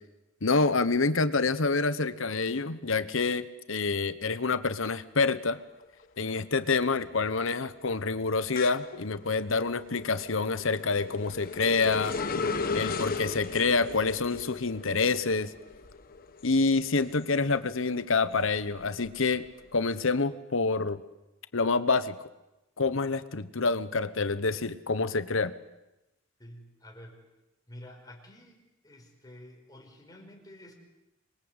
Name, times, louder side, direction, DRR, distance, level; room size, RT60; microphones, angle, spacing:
voice 1, 0.4-5.6 6.2-12.1 12.7-15.5 16.4-19.5 19.7-21.0 21.5-22.1 22.8-25.5, left 4 dB, 70° left, 13 dB, 1.2 m, -27 dB
sound 1, 5.6-6.0 6.4-17.7 18.1-19.8, left 4 dB, 45° left, 1.4 m, -37 dB
voice 2, 26.4-27.2 27.7-30.8, left 1 dB, 20° left, 1 dB, 5.2 m, -50 dB
26.5 x 22.5 x 8.2 m, 0.95 s
head